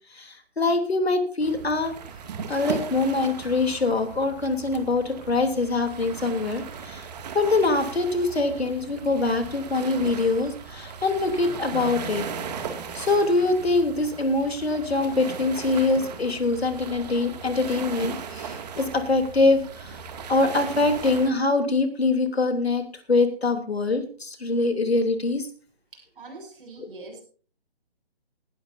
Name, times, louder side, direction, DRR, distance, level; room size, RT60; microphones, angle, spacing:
voice 1, 0.1-1.9 2.5-7.1 7.3-12.2 12.9-20.0 20.3-25.5 26.8-26.9, left 3 dB, 80° left, 7 dB, 3.4 m, -24 dB
sound 1, 1.4-21.3, right 6 dB, 40° right, 2.4 m, -37 dB
sound 2, 11.7-15.7, left 2 dB, 75° right, 6.8 m, -44 dB
voice 2, 25.9-27.2, right 3 dB, 60° right, 2 dB, 7.7 m, -43 dB
18.5 x 13.0 x 2.7 m, 0.40 s
figure-of-eight pair, 145°, 31 cm